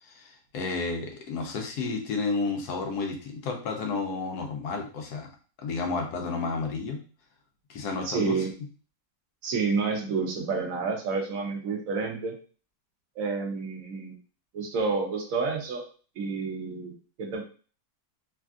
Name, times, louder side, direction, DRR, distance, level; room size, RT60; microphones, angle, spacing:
voice 1, 0.0-5.3 5.6-7.0 7.7-8.5, left 4 dB, 85° left, 2 dB, 1.2 m, -31 dB
voice 2, 8.0-8.5 9.4-12.3 13.2-14.2 14.5-15.8 16.2-17.4, right 4 dB, 65° right, 1 dB, 1.1 m, -29 dB
3.4 x 2.4 x 2.3 m, 0.38 s
omnidirectional pair, 1.6 m